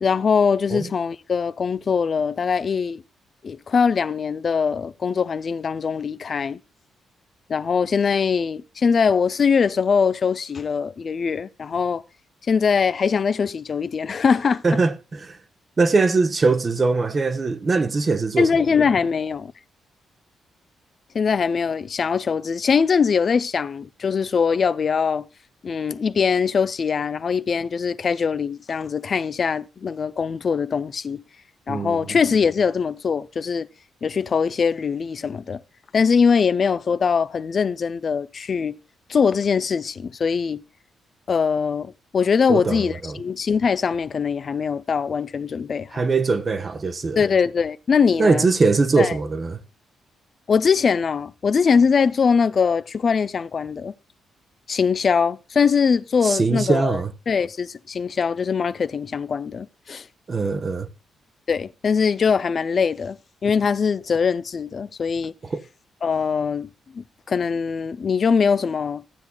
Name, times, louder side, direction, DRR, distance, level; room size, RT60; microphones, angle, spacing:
voice 1, 0.0-3.0 3.4-6.6 7.5-12.0 12.5-14.6 18.4-19.5 21.1-25.3 25.6-31.2 31.7-33.7 34.0-35.6 35.9-38.8 39.1-40.6 41.3-45.9 47.2-48.4 49.0-49.2 50.5-53.9 54.7-57.0 57.3-60.1 61.5-63.2 63.4-65.3 66.0-66.7 66.9-69.0, left 6 dB, 50° left, 0.4 m, -22 dB
voice 2, 14.6-15.4 15.8-18.7 31.7-32.1 42.5-43.2 45.9-47.2 48.2-49.6 56.2-57.1 60.3-60.9 65.5-65.6, right 4 dB, 40° right, 0.9 m, -21 dB
14.5 x 8.0 x 2.3 m
supercardioid pair, 55°, 0 cm